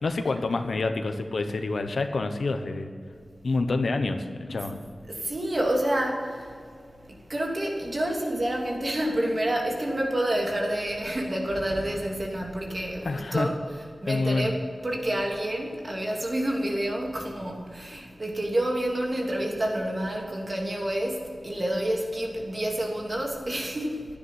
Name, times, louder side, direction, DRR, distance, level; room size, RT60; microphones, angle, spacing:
voice 1, 0.0-2.9 3.4-4.8 13.0-13.5 14.1-14.5, left 3 dB, 90° left, 7 dB, 1.1 m, -27 dB
voice 2, 5.1-6.5 7.1-13.5 14.0-24.1, right 1 dB, 40° right, 0 dB, 2.9 m, -28 dB
12.0 x 9.9 x 9.3 m, 2.2 s
wide cardioid pair, 80°, 0 cm